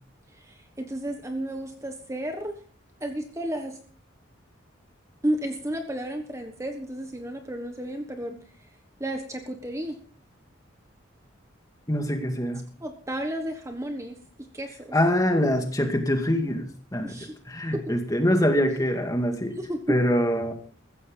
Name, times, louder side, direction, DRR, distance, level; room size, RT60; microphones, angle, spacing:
voice 1, 0.3-2.6 3.0-3.8 5.2-8.4 9.0-10.0 12.8-14.2 14.5-14.9 17.0-17.3 17.7-17.8 19.6-20.0, right 1 dB, 15° right, 5 dB, 1.3 m, -32 dB
voice 2, 11.9-12.6 14.9-17.1 17.5-19.5 19.9-20.5, equal, 20° left, 4 dB, 2.1 m, -24 dB
15.5 x 14.5 x 3.9 m, 0.43 s
head